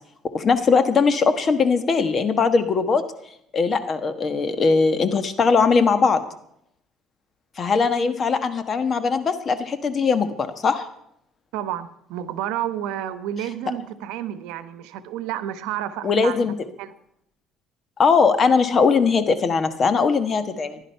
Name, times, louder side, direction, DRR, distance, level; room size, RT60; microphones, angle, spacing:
voice 1, 0.3-3.0 3.5-6.2 7.6-10.9 16.0-16.5 18.0-20.8, left 5 dB, 35° left, 10 dB, 1.2 m, -20 dB
voice 2, 11.5-16.4 16.8-16.9, right 11 dB, 90° right, 12 dB, 1.0 m, -30 dB
15.5 x 11.0 x 5.6 m, 0.74 s
cardioid pair, 140°, 0 cm